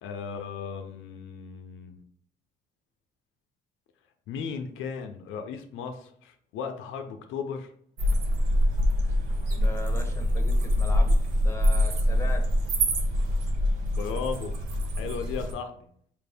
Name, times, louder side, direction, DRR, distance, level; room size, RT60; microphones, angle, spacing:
voice 1, 0.0-2.0 4.3-7.7 13.9-14.5 15.0-15.9, left 6 dB, 90° left, 6 dB, 0.5 m, -36 dB
sound 1, 8.0-15.5, equal, 85° right, 0.8 m, -25 dB
voice 2, 9.6-12.5, left 3 dB, 15° left, 5 dB, 0.8 m, -39 dB
4.6 x 2.5 x 3.4 m, 0.62 s
cardioid pair, 90°, 20 cm